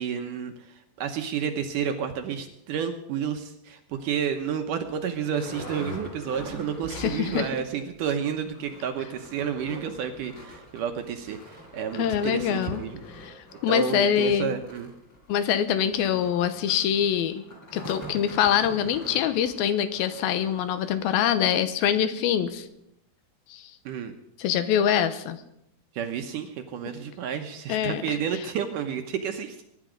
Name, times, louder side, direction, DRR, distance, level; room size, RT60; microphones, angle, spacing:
voice 1, 0.0-13.0 13.7-14.9 23.9-24.1 25.9-29.6, right 7 dB, 70° right, 6 dB, 2.1 m, -31 dB
sound 1, 3.9-4.0 4.5-4.6 4.8-7.8 8.1-8.2 8.4-21.2 21.8-21.9 22.3-22.4, equal, 25° left, 4.3 m, -43 dB
voice 2, 6.9-7.5 11.9-12.8 13.2-14.5 15.3-17.4 17.7-22.7 23.5-23.7 24.4-25.4 27.7-28.2, left 9 dB, 80° left, 11 dB, 2.6 m, -24 dB
23.0 x 10.5 x 5.1 m, 0.80 s
omnidirectional pair, 4.5 m